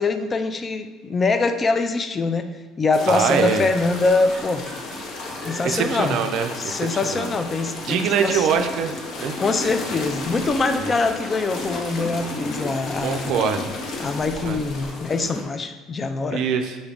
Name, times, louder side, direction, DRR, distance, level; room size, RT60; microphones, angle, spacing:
voice 1, 0.0-2.5 2.8-4.7 5.4-6.2 6.6-8.5 9.4-13.4 14.0-16.4, left 3 dB, 30° left, 9 dB, 0.3 m, -23 dB
sound 1, 2.9-15.4, left 2 dB, 55° left, 0.7 m, -33 dB
voice 2, 3.1-3.7 5.6-7.3 7.9-8.9 9.2-9.4 10.8-11.0 13.0-13.7 14.4-14.6 16.3-16.8, right 6 dB, 65° right, 6 dB, 0.4 m, -23 dB
sound 2, 4.1-6.3 6.6-6.7, right 1 dB, 15° right, 0.8 m, -43 dB
5.2 x 2.3 x 3.4 m, 1.2 s
hypercardioid pair, 75°, 0 cm